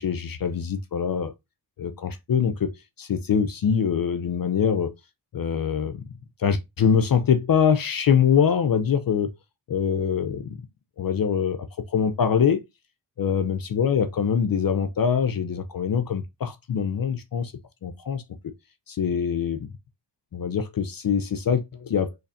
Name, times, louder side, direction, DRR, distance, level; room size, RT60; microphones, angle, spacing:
voice 1, 0.0-1.3 1.8-2.7 3.0-4.9 5.3-6.0 6.4-9.3 9.7-10.6 11.0-12.6 13.2-17.5 17.8-18.2 18.9-19.7 20.3-22.1, left 7 dB, 45° left, 0.6 m, -24 dB
4.0 x 3.2 x 2.6 m
supercardioid pair, 45°, 49 cm